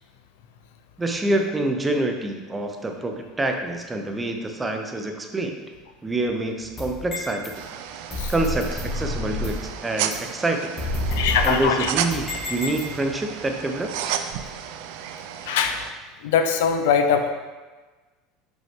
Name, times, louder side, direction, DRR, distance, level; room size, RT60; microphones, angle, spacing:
voice 1, 1.0-5.6 6.0-7.6 8.3-10.7 11.4-14.2, right 2 dB, 15° right, 4 dB, 0.7 m, -26 dB
sound 1, 6.6-7.5 8.1-9.7 10.1-10.2 10.8-13.2, left 1 dB, 30° left, 2.1 m, -29 dB
sound 2, 7.5-15.9, right 9 dB, 75° right, 0.4 m, -33 dB
voice 2, 11.1-11.9 15.5-15.8 16.2-17.3, left 7 dB, 90° left, 7 dB, 0.6 m, -21 dB
6.0 x 5.3 x 3.6 m, 1.3 s
supercardioid pair, 125°, 0 cm